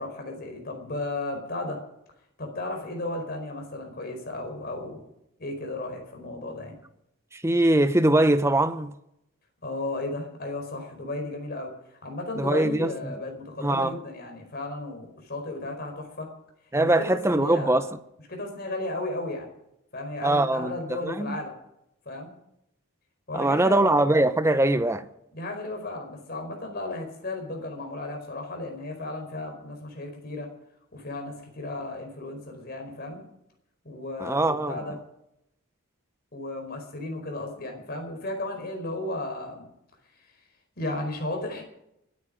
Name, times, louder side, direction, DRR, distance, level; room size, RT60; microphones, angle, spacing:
voice 1, 0.0-1.8 2.4-5.0 5.4-6.7 9.6-11.7 12.0-16.3 16.8-17.9 18.3-19.5 19.9-21.5 22.0-22.3 23.3-23.8 25.3-30.5 30.9-33.2 33.8-35.0 36.3-39.7 40.8-41.6, left 2 dB, 45° left, 4.8 m, -34 dB
voice 2, 7.3-9.0 12.4-13.1 13.6-14.0 16.7-17.9 20.2-20.7 21.0-21.4 23.3-25.1 34.2-34.7, right 1 dB, 10° right, 0.8 m, -22 dB
25.5 x 9.6 x 5.1 m
head